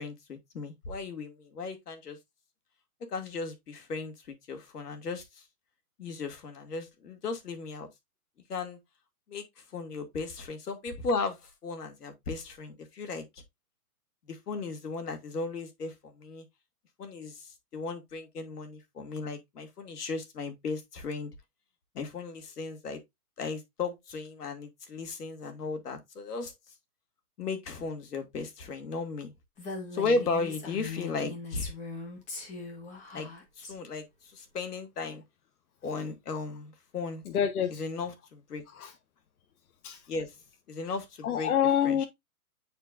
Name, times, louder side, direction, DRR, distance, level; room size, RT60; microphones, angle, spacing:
voice 1, 0.0-2.2 3.1-4.1 4.5-5.2 6.0-7.9 8.5-8.8 9.3-9.4 9.7-11.4 11.6-13.2 14.5-15.9 16.2-16.4 17.0-17.3 17.7-21.3 22.0-23.0 23.4-26.5 27.4-29.3 29.9-31.7 33.1-33.3 33.7-34.0 34.5-35.2 35.8-37.2 37.8-38.6 40.1-40.3 40.7-41.5 41.8-42.1, left 3 dB, 80° left, 2.2 m, -35 dB
Female speech woman speaking, 29.6-33.7, left 3 dB, 15° left, 1.3 m, -40 dB
voice 2, 37.2-37.8 38.7-38.9 39.8-40.0 41.2-42.0, left 9 dB, 65° left, 1.1 m, -27 dB
9.1 x 4.5 x 2.5 m
hypercardioid pair, 155°, 46 cm